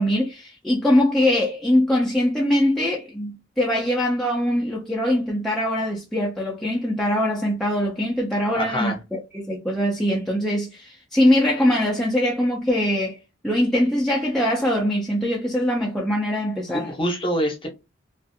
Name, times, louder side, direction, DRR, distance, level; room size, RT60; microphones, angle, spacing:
voice 1, 0.0-13.2 13.4-16.9, left 1 dB, ahead, 0.4 m, -22 dB
voice 2, 8.5-9.0 16.7-17.7, equal, 25° left, 0.8 m, -25 dB
2.5 x 2.4 x 2.6 m
head